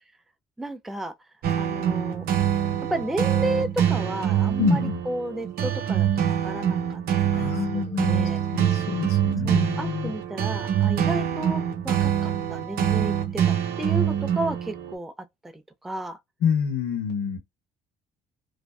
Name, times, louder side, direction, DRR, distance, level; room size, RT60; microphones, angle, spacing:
voice 1, 0.6-1.1 1.5-2.3 2.9-7.0 7.4-8.4 9.4-15.1 15.4-16.2, right 1 dB, ahead, 0.3 m, -33 dB
sound 1, 1.4-15.0, right 9 dB, 60° right, 0.6 m, -25 dB
voice 2, 4.6-5.0 7.3-10.1 16.4-17.4, left 7 dB, 90° left, 0.8 m, -27 dB
2.6 x 2.1 x 2.2 m
cardioid pair, 110°, 17 cm